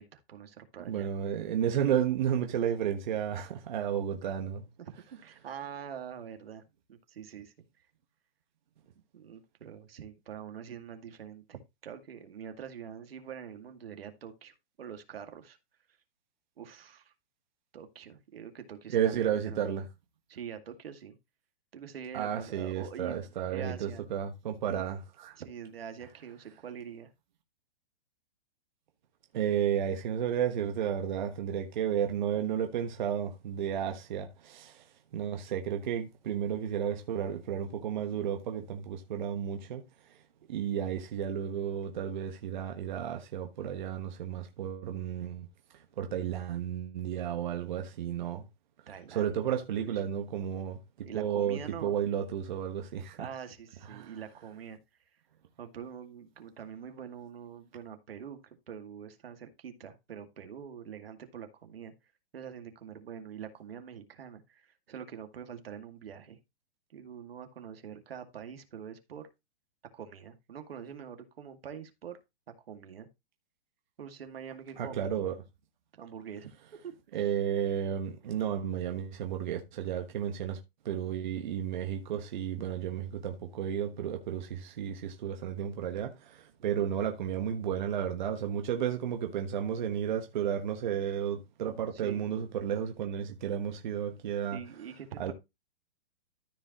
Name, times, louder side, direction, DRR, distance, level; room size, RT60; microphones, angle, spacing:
voice 1, 0.0-1.1 4.8-6.6 6.9-7.9 9.1-15.6 16.6-17.1 17.7-19.7 20.3-21.2 21.7-24.0 25.4-27.1 48.9-49.5 49.8-50.0 51.0-51.9 53.2-54.8 55.6-61.9 62.3-66.4 66.9-69.3 69.9-72.2 72.7-73.1 74.0-75.1 76.0-76.5 76.8-77.0 86.6-86.9 91.9-92.3 94.5-95.3, right 8 dB, 75° right, 2.2 m, -45 dB
voice 2, 0.8-4.6 18.9-19.8 22.1-25.3 29.3-34.8 35.1-39.8 40.5-45.5 46.0-48.4 49.1-50.8 51.1-53.3 53.9-54.1 74.8-75.3 77.1-80.6 80.8-94.6 95.2-95.3, right 9 dB, 50° right, 1.3 m, -32 dB
13.5 x 5.2 x 3.0 m
hypercardioid pair, 165°, 30 cm